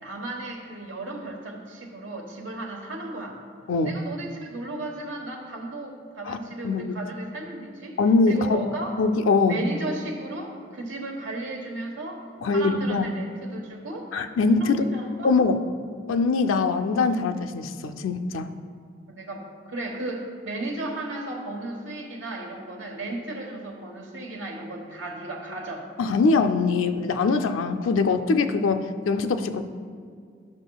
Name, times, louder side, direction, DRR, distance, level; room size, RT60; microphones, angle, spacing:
voice 1, 0.0-3.4 3.8-8.0 8.3-9.0 9.5-12.2 12.5-14.1 14.6-15.3 19.1-25.9, right 2 dB, 75° right, 1 dB, 1.1 m, -35 dB
voice 2, 6.6-7.0 8.0-8.6 9.0-9.6 12.4-13.1 14.1-14.8 15.2-15.6 16.1-18.5 26.0-29.6, left 4 dB, 90° left, 7 dB, 0.4 m, -22 dB
11.5 x 6.1 x 2.3 m, 2.2 s
head